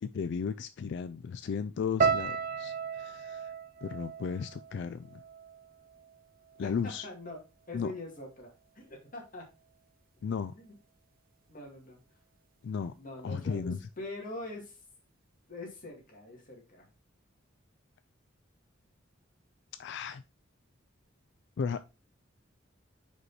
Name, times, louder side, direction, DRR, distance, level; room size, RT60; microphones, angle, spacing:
voice 1, 0.0-3.5 3.8-5.2 6.6-7.1 7.7-7.9 10.2-10.6 12.6-12.9 13.2-13.9 19.8-20.2 21.6-21.8, left 6 dB, 60° left, 0.3 m, -35 dB
sound 1, 2.0-6.2 6.5-7.3 7.8-8.1, right 6 dB, 45° right, 0.6 m, -34 dB
voice 2, 6.6-7.4 7.7-9.4 10.5-10.7 11.5-12.0 13.0-14.8 15.5-16.9, left 2 dB, 45° left, 2.2 m, -44 dB
5.2 x 4.8 x 4.1 m
head